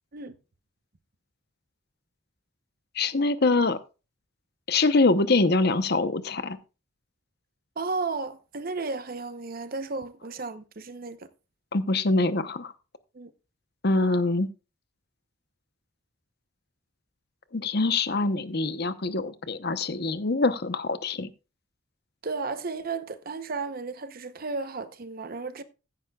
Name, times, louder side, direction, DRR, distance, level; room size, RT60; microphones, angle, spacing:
voice 1, 3.0-3.8 4.7-6.6 11.7-12.7 13.8-14.5 17.5-21.3, left 3 dB, 55° left, 0.9 m, -24 dB
voice 2, 7.8-11.3 13.1-13.3 22.2-25.6, right 4 dB, 50° right, 0.8 m, -34 dB
14.5 x 10.0 x 2.4 m
head